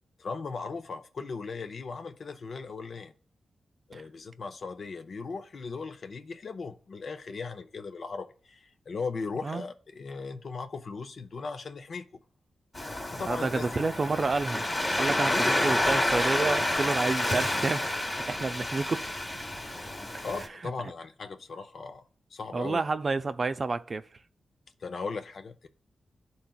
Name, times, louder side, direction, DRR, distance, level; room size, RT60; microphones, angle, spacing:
voice 1, 0.2-3.1 3.9-12.1 13.1-13.9 14.9-15.6 20.2-22.0 22.3-22.8 24.8-25.7, left 4 dB, 60° left, 0.6 m, -38 dB
Waves surf, 12.7-20.5, left 1 dB, 25° left, 1.2 m, -29 dB
voice 2, 13.3-14.6 15.0-17.9 18.3-19.1 22.5-24.0, right 3 dB, 45° right, 0.4 m, -29 dB
11.5 x 3.9 x 2.3 m
cardioid pair, 85°, 0 cm